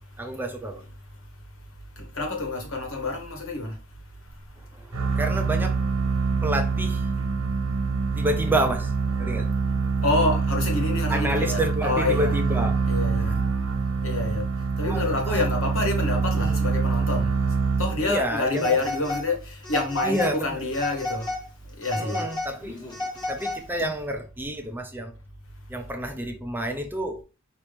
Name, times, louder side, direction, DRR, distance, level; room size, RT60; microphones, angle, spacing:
voice 1, 0.2-0.8 4.6-5.8 6.3-7.1 8.1-9.6 11.1-12.8 13.2-13.3 14.8-15.4 16.3-16.6 18.0-18.8 20.0-20.6 22.0-22.8 23.2-25.1 25.7-27.2, right 1 dB, 10° right, 0.5 m, -29 dB
voice 2, 1.9-3.8 4.2-4.8 5.1-5.2 10.0-12.3 12.9-13.5 13.8-21.3 21.6-22.3 23.2-23.3, left 2 dB, 70° left, 1.5 m, -28 dB
sound 1, 4.9-18.3, right 4 dB, 90° right, 1.3 m, -25 dB
Telephone, 18.5-19.3 19.6-20.4 20.7-21.4 21.8-23.8, left 2 dB, 20° left, 1.3 m, -32 dB
5.1 x 3.0 x 3.4 m
head